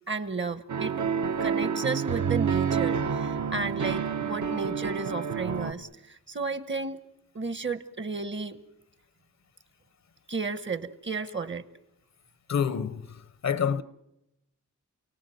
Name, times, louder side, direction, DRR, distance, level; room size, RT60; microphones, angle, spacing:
voice 1, 0.1-0.9 1.4-7.1 7.3-8.6 10.3-11.6, right 4 dB, 40° right, 1.1 m, -33 dB
sound 1, 0.7-5.7, right 7 dB, 70° right, 1.2 m, -28 dB
voice 2, 12.5-13.2 13.4-13.8, left 7 dB, 60° left, 0.9 m, -27 dB
29.5 x 18.5 x 9.2 m
wide cardioid pair, 130°, 31 cm